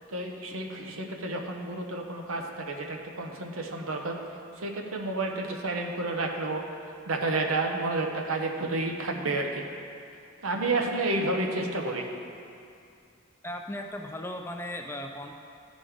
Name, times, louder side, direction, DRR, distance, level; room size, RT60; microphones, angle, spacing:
voice 1, 0.1-4.2 4.6-6.6 7.1-9.7 10.4-12.1, right 2 dB, 80° right, 2 dB, 0.9 m, -30 dB
voice 2, 13.4-15.3, left 1 dB, 10° left, 3 dB, 0.3 m, -37 dB
14.0 x 5.2 x 3.6 m, 2.5 s
head